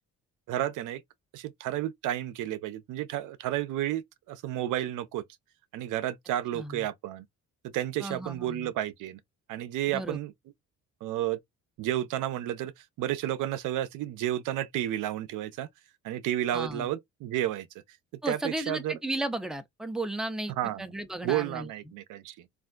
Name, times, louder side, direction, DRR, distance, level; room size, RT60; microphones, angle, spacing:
voice 1, 0.5-1.0 1.3-5.2 5.7-7.2 7.6-9.2 9.5-10.3 11.0-11.4 11.8-12.7 13.0-15.7 16.0-17.7 18.3-19.0 20.6-20.9 21.2-22.5, right 12 dB, 85° right, 0.6 m, -31 dB
voice 2, 6.5-6.9 8.0-8.7 9.9-10.2 16.5-16.9 18.2-22.0, right 1 dB, ahead, 0.6 m, -35 dB
3.4 x 2.5 x 2.4 m
cardioid pair, 90°, 30 cm